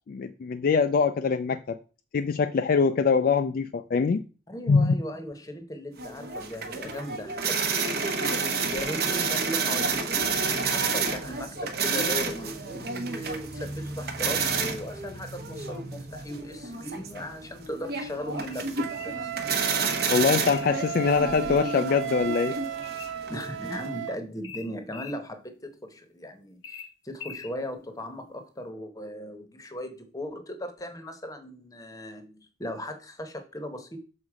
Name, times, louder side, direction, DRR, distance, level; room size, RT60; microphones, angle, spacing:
voice 1, 0.1-1.8 2.1-4.2 4.7-4.9 20.1-22.6, left 5 dB, 50° left, 0.3 m, -23 dB
voice 2, 4.5-19.3 23.3-34.0, equal, 20° left, 0.9 m, -38 dB
sound 1, 6.0-23.9, right 4 dB, 55° right, 0.9 m, -30 dB
sound 2, 18.4-19.2 20.0-20.8 22.3-23.2 24.4-25.2 26.6-27.5, left 6 dB, 75° left, 0.7 m, -44 dB
Wind instrument woodwind instrument, 18.7-24.2, right 9 dB, 80° right, 0.4 m, -35 dB
6.4 x 3.9 x 4.8 m
head